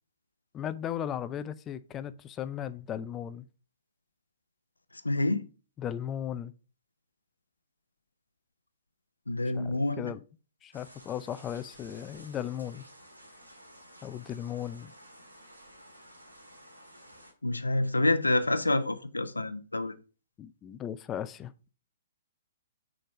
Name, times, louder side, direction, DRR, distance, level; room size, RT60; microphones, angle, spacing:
voice 1, 0.5-3.5 5.8-6.5 9.6-10.2 10.6-12.9 14.0-14.9 20.4-21.5, left 10 dB, 20° left, 0.4 m, -36 dB
voice 2, 5.0-5.5 9.3-10.1 17.4-20.0, left 2 dB, 80° left, 0.7 m, -27 dB
sound 1, 10.7-17.3, equal, 85° right, 1.8 m, -53 dB
6.3 x 4.0 x 4.7 m
figure-of-eight pair, 120°, 0 cm